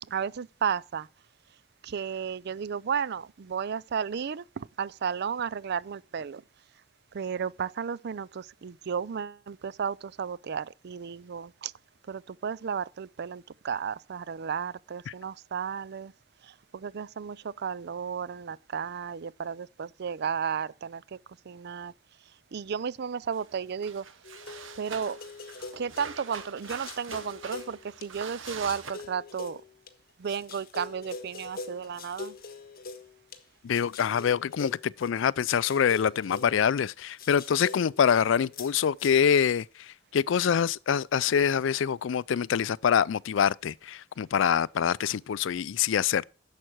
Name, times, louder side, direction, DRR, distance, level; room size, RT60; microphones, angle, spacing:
voice 1, 0.1-1.1 1.8-6.4 7.1-11.7 12.1-16.1 16.4-21.2 21.5-21.9 22.5-24.0 24.8-25.2 25.8-29.6 30.2-32.4, right 7 dB, 55° right, 0.4 m, -33 dB
sound 1, 23.3-23.5 23.8-28.9, right 5 dB, 75° right, 1.2 m, -43 dB
sound 2, 24.2-28.1 28.4-29.9 30.2-33.4 33.7-36.9 37.2-39.2, left 4 dB, 50° left, 1.4 m, -44 dB
voice 2, 33.6-46.2, left 7 dB, 70° left, 0.4 m, -25 dB
11.0 x 7.4 x 4.6 m
head